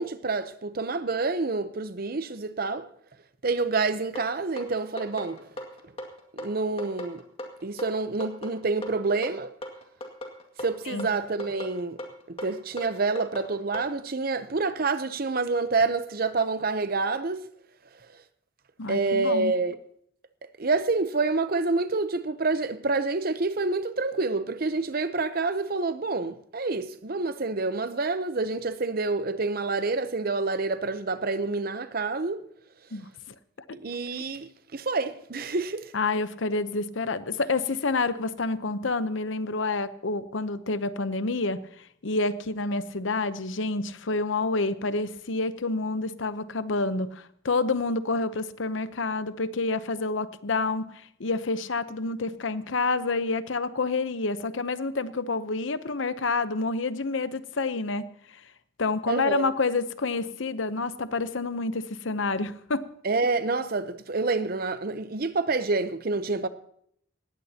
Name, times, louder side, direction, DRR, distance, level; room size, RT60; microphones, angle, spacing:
voice 1, 0.0-2.9 3.4-5.5 6.3-7.2 7.6-9.5 10.6-12.0 12.3-17.4 18.9-19.8 20.6-32.4 33.7-35.9 59.1-59.5 63.0-66.5, right 3 dB, 50° right, 0.8 m, -28 dB
sound 1, 4.2-13.9, equal, 30° left, 2.1 m, -38 dB
voice 2, 18.8-19.5 32.9-33.1 33.7-33.8 35.9-41.6 42.0-50.9 51.2-58.1 58.8-62.9, left 3 dB, 75° left, 0.8 m, -28 dB
19.0 x 15.5 x 2.9 m
head